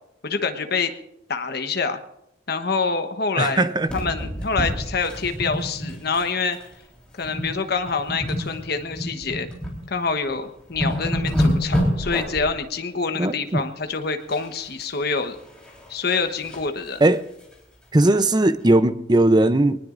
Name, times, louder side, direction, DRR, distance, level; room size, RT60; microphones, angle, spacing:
voice 1, 0.2-0.9 1.3-2.0 2.5-6.6 7.2-9.5 9.9-15.4 15.9-17.0, left 4 dB, 55° left, 1.1 m, -26 dB
voice 2, 3.4-3.9 13.2-13.6 17.0-17.2 17.9-19.8, right 2 dB, 20° right, 0.6 m, -18 dB
sound 1, 3.8-6.3 6.5-6.7 7.2-7.6 7.9-9.8 10.2-10.3 10.6-12.5 14.3-14.9 15.2-16.7 17.1-17.2 17.5-17.6 18.0-18.1, equal, 5° left, 3.9 m, -27 dB
24.0 x 19.5 x 2.6 m
head